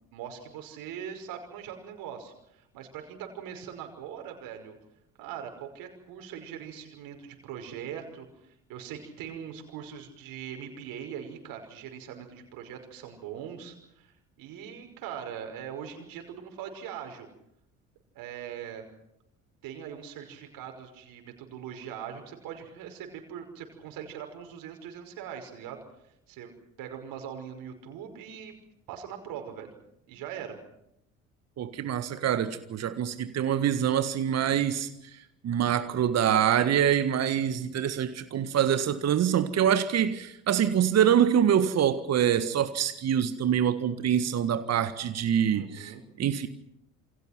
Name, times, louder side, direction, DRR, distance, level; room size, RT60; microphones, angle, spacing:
voice 1, 0.1-4.8 5.2-17.3 18.1-18.8 19.6-25.8 26.3-26.5 26.8-28.5 28.9-29.7 30.1-30.6 45.5-46.0, right 8 dB, 55° right, 5.7 m, -41 dB
voice 2, 31.6-34.9 35.4-45.9 46.2-46.5, right 9 dB, 40° right, 1.7 m, -25 dB
28.5 x 25.5 x 6.0 m
figure-of-eight pair, 55°, 41 cm